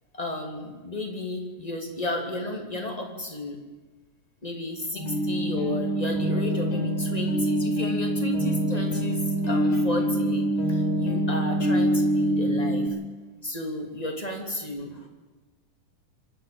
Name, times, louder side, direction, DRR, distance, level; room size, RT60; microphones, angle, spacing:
voice 1, 0.1-3.6 4.4-9.2 9.5-13.0 13.4-15.1, left 1 dB, 10° left, 2 dB, 2.6 m, -33 dB
sound 1, 4.9-12.9, right 1 dB, 55° left, 5.6 m, -25 dB
26.5 x 11.0 x 8.9 m, 1.3 s
omnidirectional pair, 4.0 m